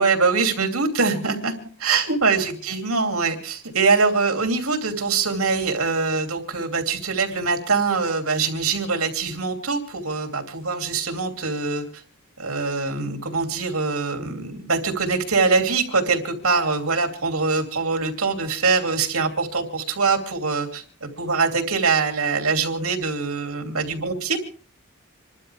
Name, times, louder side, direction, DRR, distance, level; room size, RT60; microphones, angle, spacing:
voice 1, 0.0-12.0 12.4-24.4, right 4 dB, 80° right, 5 dB, 2.8 m, -23 dB
27.5 x 12.5 x 3.5 m, 0.41 s
head